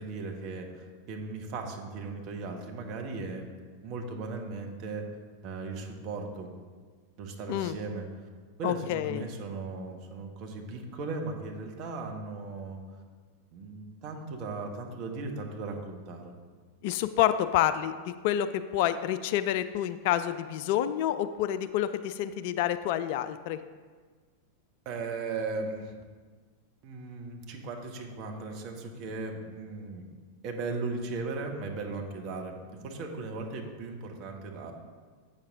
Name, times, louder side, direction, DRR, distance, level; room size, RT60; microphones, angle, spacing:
voice 1, 0.0-3.5 3.8-5.0 5.4-6.5 7.2-8.1 8.6-12.8 13.5-16.3 24.8-25.9 26.8-30.0 30.4-34.7, right 3 dB, 40° right, 2 dB, 1.2 m, -37 dB
voice 2, 8.6-9.2 16.8-23.6, left 11 dB, 50° left, 12 dB, 0.3 m, -28 dB
8.5 x 6.4 x 3.6 m, 1.5 s
figure-of-eight pair, 90°, 0 cm